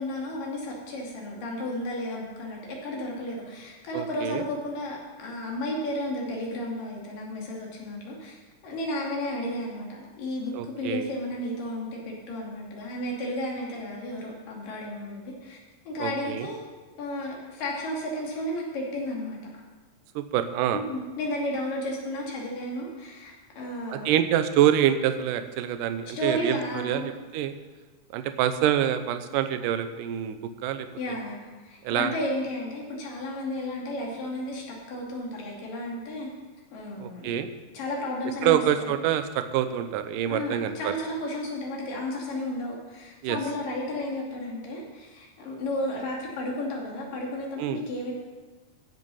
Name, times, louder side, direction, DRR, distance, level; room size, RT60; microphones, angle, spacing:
voice 1, 0.0-8.4 8.6-15.6 15.9-16.6 17.0-19.4 20.7-24.2 26.2-27.2 31.0-36.3 36.7-37.4 37.7-39.0 40.3-48.1, left 1 dB, 70° left, -2 dB, 4.3 m, -33 dB
voice 2, 3.9-4.4 10.5-11.1 16.0-16.5 20.2-20.8 23.9-27.5 28.1-30.4 30.6-31.2 31.8-32.1 37.0-37.5 38.4-40.9 43.2-43.4 47.6-47.8, right 10 dB, 75° right, 9 dB, 2.3 m, -26 dB
15.0 x 8.0 x 5.6 m, 1.3 s
omnidirectional pair, 4.0 m